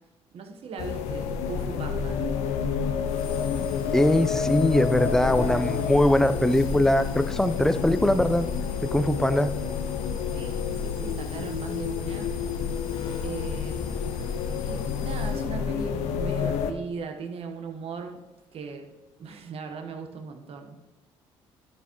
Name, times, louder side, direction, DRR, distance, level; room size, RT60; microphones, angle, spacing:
voice 1, 0.3-2.2 10.3-12.3 13.2-13.9 14.6-18.2 18.5-18.9 19.2-20.8, right 5 dB, 60° right, 5 dB, 1.2 m, -38 dB
sound 1, 0.7-18.7 19.2-19.5, left 4 dB, 50° left, 1.5 m, -48 dB
sound 2, 0.8-16.7, left 6 dB, 80° left, 0.6 m, -29 dB
voice 2, 3.9-8.5 8.8-9.5, left 1 dB, 5° left, 12 dB, 0.5 m, -22 dB
12.0 x 6.2 x 3.0 m, 1.1 s
supercardioid pair, 65°, 12 cm